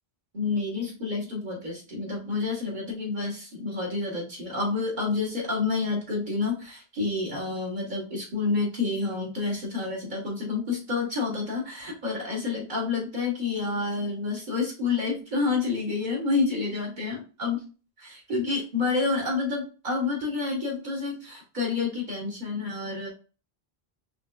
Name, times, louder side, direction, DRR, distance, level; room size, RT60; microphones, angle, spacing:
voice 1, 0.3-17.6 18.0-23.1, left 4 dB, 45° right, -2 dB, 1.5 m, -29 dB
5.0 x 3.1 x 2.3 m, 0.35 s
omnidirectional pair, 1.1 m